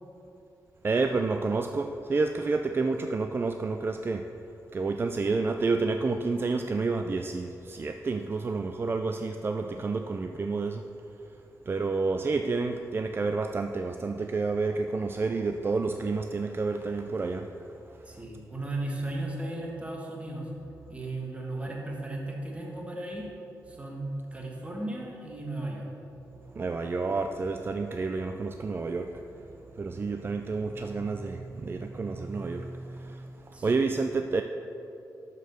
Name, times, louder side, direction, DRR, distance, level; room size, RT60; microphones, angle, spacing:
voice 1, 0.8-4.3 4.7-10.8 11.7-17.5 26.5-29.2 29.5-34.4, right 3 dB, 35° right, 6 dB, 0.3 m, -29 dB
voice 2, 18.0-20.5 20.9-23.3 23.7-25.9 33.5-34.0, right 2 dB, 20° right, -2 dB, 1.6 m, -36 dB
6.7 x 6.4 x 6.5 m, 2.9 s
cardioid pair, 90°, 7 cm